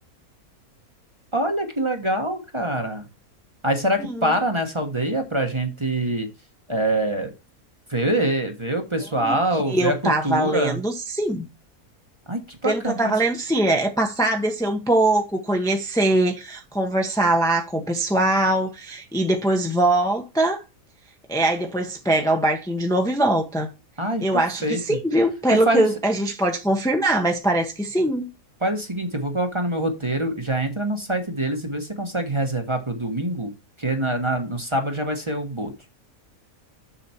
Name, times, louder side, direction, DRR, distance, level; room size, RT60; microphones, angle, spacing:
voice 1, 1.3-3.1 3.6-6.3 6.7-7.3 7.9-10.8 12.3-13.1 24.0-25.0 25.5-25.9 28.6-33.5 33.8-35.7, right 1 dB, 20° right, 1.2 m, -25 dB
voice 2, 4.0-4.3 9.2-9.4 9.7-11.5 12.6-20.6 21.3-23.7 24.2-28.3, right 1 dB, 5° left, 0.9 m, -22 dB
6.9 x 6.8 x 4.4 m
omnidirectional pair, 1.5 m